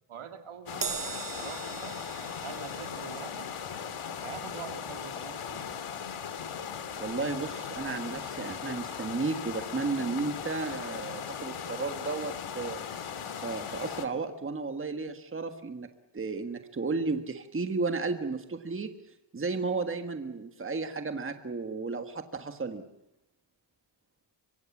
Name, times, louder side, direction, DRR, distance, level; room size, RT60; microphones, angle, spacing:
voice 1, 0.1-2.0 2.4-3.5 4.2-5.8, right 7 dB, 75° right, 6 dB, 2.6 m, -44 dB
sound 1, 0.7-14.1, left 7 dB, 85° left, 2.2 m, -38 dB
Crash cymbal, 0.8-7.4 7.8-8.0 9.0-9.1, right 8 dB, 40° right, 0.9 m, -43 dB
voice 2, 7.0-12.8 13.4-18.9 19.3-22.8, right 4 dB, 25° right, 7 dB, 1.5 m, -33 dB
24.5 x 24.0 x 7.3 m, 0.89 s
wide cardioid pair, 175°, 50 cm